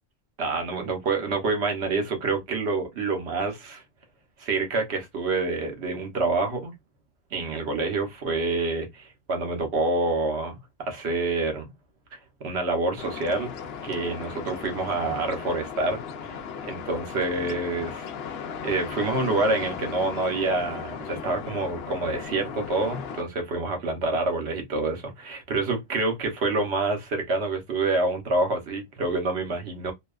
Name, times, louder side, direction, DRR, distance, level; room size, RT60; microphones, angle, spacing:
voice 1, 0.4-3.8 4.4-6.7 7.3-11.7 12.4-13.5 13.8-16.0 16.3-16.4 16.6-18.0 18.6-29.9, right 3 dB, 65° right, 1.1 m, -27 dB
sound 1, 13.0-23.2, left 6 dB, 65° left, 0.7 m, -36 dB
2.5 x 2.2 x 2.3 m
omnidirectional pair, 1.2 m